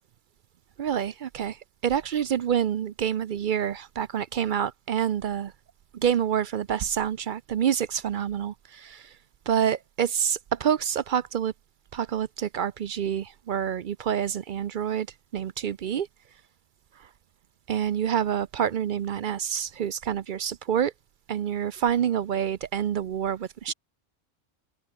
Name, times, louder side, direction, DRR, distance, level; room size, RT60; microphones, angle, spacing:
voice 1, 0.8-1.6 1.8-5.5 5.9-9.0 9.5-11.5 11.9-15.1 15.3-16.1 17.7-20.9 21.3-23.7, right 9 dB, 55° right, 0.5 m, -27 dB
open air
omnidirectional pair, 1.3 m